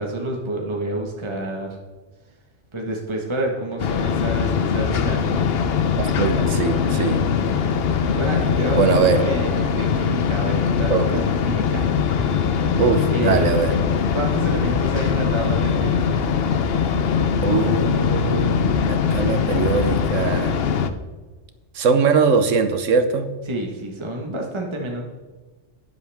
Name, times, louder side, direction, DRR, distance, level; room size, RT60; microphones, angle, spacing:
voice 1, 0.0-1.8 2.7-5.5 8.1-11.8 13.1-13.5 14.1-16.2 23.5-25.0, right 1 dB, 25° right, 0 dB, 1.4 m, -28 dB
sound 1, 3.8-20.9, left 6 dB, 55° left, 0.8 m, -21 dB
voice 2, 6.0-7.2 8.8-9.2 10.9-11.2 12.8-13.8 17.4-20.5 21.7-23.3, right 5 dB, 80° right, 9 dB, 1.3 m, -21 dB
12.5 x 10.5 x 3.5 m, 1.3 s
omnidirectional pair, 1.3 m